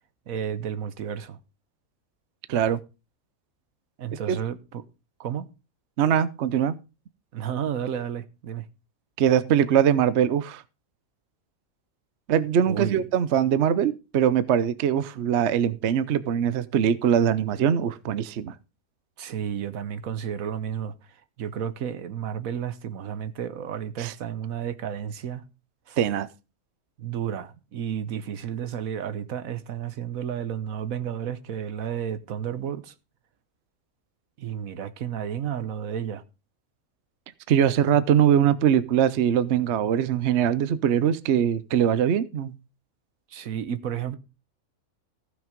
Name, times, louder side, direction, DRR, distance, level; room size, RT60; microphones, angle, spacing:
voice 1, 0.3-1.4 4.0-4.8 5.2-5.5 7.3-8.7 12.7-13.1 19.2-25.4 25.9-26.0 27.0-32.9 34.4-36.2 43.3-44.2, right 9 dB, 75° right, 1.3 m, -32 dB
voice 2, 2.5-2.8 4.3-4.4 6.0-6.8 9.2-10.6 12.3-18.5 24.0-24.1 26.0-26.3 37.5-42.5, right 9 dB, 60° right, 0.9 m, -22 dB
15.0 x 6.3 x 5.1 m
omnidirectional pair, 1.5 m